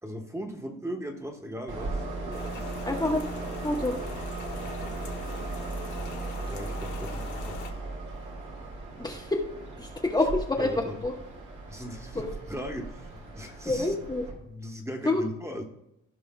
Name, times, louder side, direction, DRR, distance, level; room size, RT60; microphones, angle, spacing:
voice 1, 0.0-2.8 6.5-7.6 10.6-11.0 11.7-14.0 14.4-15.6, equal, 10° right, 2 dB, 1.3 m, -38 dB
Train, 1.7-14.3, right 3 dB, 80° right, 2.2 m, -37 dB
Rain, 2.3-7.7, left 6 dB, 75° left, 1.4 m, -44 dB
voice 2, 2.8-3.3 3.6-4.0 9.0-9.4 9.8-11.1 12.1-12.4 13.7-14.2 15.0-15.2, left 2 dB, 15° left, -1 dB, 0.9 m, -27 dB
15.5 x 5.1 x 2.3 m, 0.82 s
cardioid pair, 90°, 30 cm